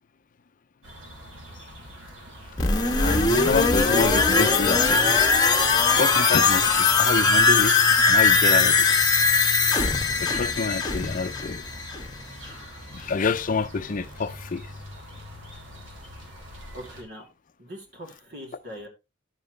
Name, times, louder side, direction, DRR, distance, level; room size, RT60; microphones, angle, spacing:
sound 1, 0.8-17.0, equal, 90° right, 2.7 m, -44 dB
sound 2, 2.6-12.3 12.6-12.7, left 4 dB, 20° left, 1.3 m, -20 dB
voice 1, 3.0-5.1 6.0-7.7 8.1-8.9 10.2-11.6 12.9-14.7, left 4 dB, 45° left, 0.5 m, -27 dB
voice 2, 16.7-17.2 17.6-18.9, equal, 60° right, 3.0 m, -41 dB
11.0 x 7.3 x 3.2 m
head